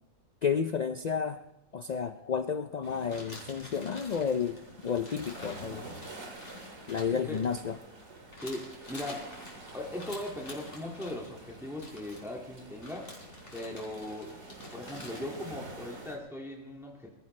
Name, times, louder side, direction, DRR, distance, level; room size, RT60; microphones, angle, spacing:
voice 1, 0.4-1.4 1.7-5.9 6.9-7.8, left 6 dB, 90° left, 9 dB, 0.3 m, -31 dB
sound 1, 2.8-16.2, right 2 dB, 55° right, 2.5 m, -48 dB
sound 2, 3.1-8.0 8.3-11.2 11.7-12.3 12.8-15.4, left 1 dB, 45° left, 3.9 m, -48 dB
voice 2, 7.1-7.4 8.4-9.3 9.7-13.1 13.5-14.3 14.7-17.2, left 1 dB, ahead, -1 dB, 2.0 m, -39 dB
21.5 x 13.5 x 3.2 m, 0.99 s
omnidirectional pair, 1.4 m